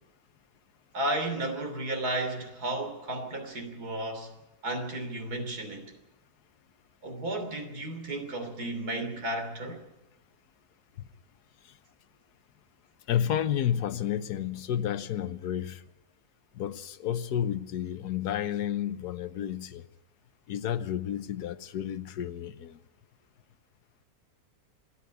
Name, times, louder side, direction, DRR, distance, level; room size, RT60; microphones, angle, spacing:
voice 1, 0.9-4.3 4.6-5.9 7.0-9.8, right 1 dB, 75° right, 3.6 m, -33 dB
voice 2, 13.1-15.8 16.5-19.8 20.5-22.8, left 10 dB, 85° left, 1.4 m, -31 dB
27.0 x 10.0 x 9.5 m
omnidirectional pair, 1.7 m